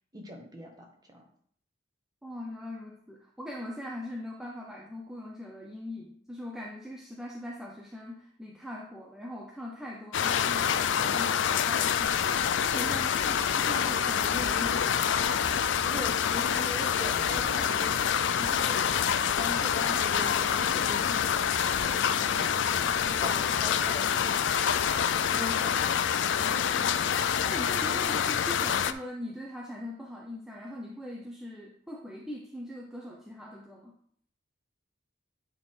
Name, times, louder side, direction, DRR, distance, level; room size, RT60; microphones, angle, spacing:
voice 1, 0.1-1.2 15.8-18.0 18.2-22.8 23.1-24.5 25.3-25.6 26.4-26.7 27.8-28.0, equal, 20° right, 1 dB, 1.2 m, -42 dB
voice 2, 2.2-15.3 25.4-25.7 26.7-27.0 27.4-34.0, left 1 dB, ahead, -2 dB, 0.6 m, -41 dB
sound 1, 10.1-28.9, left 8 dB, 60° left, 0.4 m, -27 dB
sound 2, 12.0-24.3, right 1 dB, 90° right, 1.2 m, -50 dB
9.4 x 3.8 x 4.3 m, 0.63 s
head